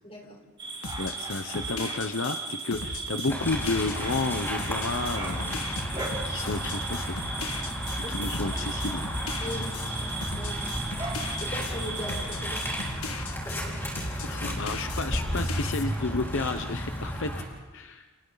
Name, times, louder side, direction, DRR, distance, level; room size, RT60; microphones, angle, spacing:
voice 1, 0.0-0.4 8.0-8.2 9.4-10.1 10.4-10.8 11.4-12.6, left 1 dB, 25° left, 1 dB, 4.6 m, -39 dB
sound 1, 0.6-12.9, right 3 dB, 25° right, 3.6 m, -37 dB
sound 2, 0.8-13.7 14.0-15.8, left 4 dB, 80° left, 1.8 m, -39 dB
voice 2, 1.0-7.2 8.1-9.1 9.6-9.7 14.2-17.3 17.7-18.1, left 3 dB, 60° left, 6 dB, 0.9 m, -32 dB
sound 3, 3.3-17.4, equal, 10° left, 4.7 m, -33 dB
29.5 x 29.5 x 4.0 m, 1.2 s
head